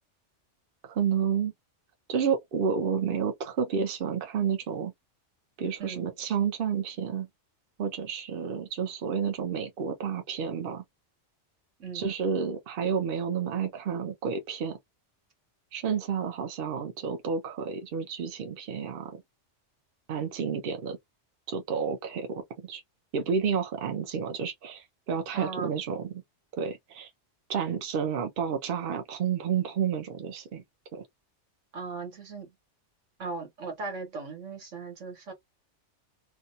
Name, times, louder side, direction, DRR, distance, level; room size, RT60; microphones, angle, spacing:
voice 1, 0.8-1.5 2.1-4.9 5.6-7.3 7.8-10.8 11.9-14.8 15.7-19.2 20.1-21.0 21.5-22.8 23.1-26.2 26.6-27.1 27.5-30.6 30.9-31.1, right 7 dB, 55° right, 0.8 m, -30 dB
voice 2, 25.3-25.7 31.7-32.5 33.2-35.3, right 4 dB, 90° right, 1.4 m, -38 dB
2.6 x 2.3 x 2.6 m
omnidirectional pair, 1.2 m